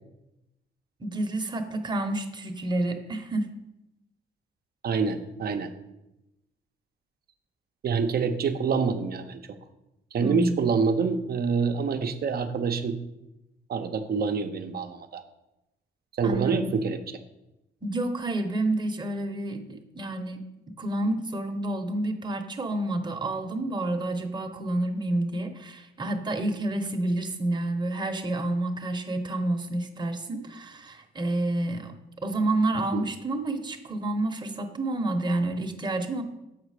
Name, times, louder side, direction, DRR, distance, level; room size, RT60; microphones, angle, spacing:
voice 1, 1.0-3.5 10.2-10.7 16.2-16.7 17.8-20.4 20.8-31.9 32.2-36.2, right 2 dB, 20° right, 5 dB, 0.9 m, -29 dB
voice 2, 4.8-5.7 7.8-9.4 10.1-13.0 13.7-15.2 16.2-17.2 32.8-33.0, right 5 dB, 50° right, 8 dB, 0.7 m, -26 dB
7.4 x 4.9 x 4.9 m, 0.93 s
cardioid pair, 90°, 20 cm